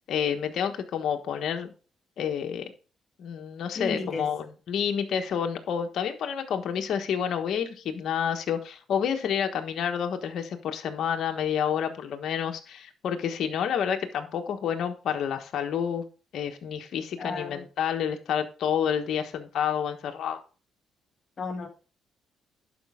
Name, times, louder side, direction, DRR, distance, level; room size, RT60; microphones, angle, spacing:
voice 1, 0.1-1.7 2.2-2.7 3.2-16.1 16.3-20.4, left 8 dB, 70° left, 5 dB, 1.3 m, -29 dB
voice 2, 3.8-4.3 17.2-17.6 21.4-21.7, left 4 dB, 45° left, 3 dB, 2.0 m, -33 dB
11.0 x 5.2 x 3.6 m, 0.36 s
cardioid pair, 90°, 0 cm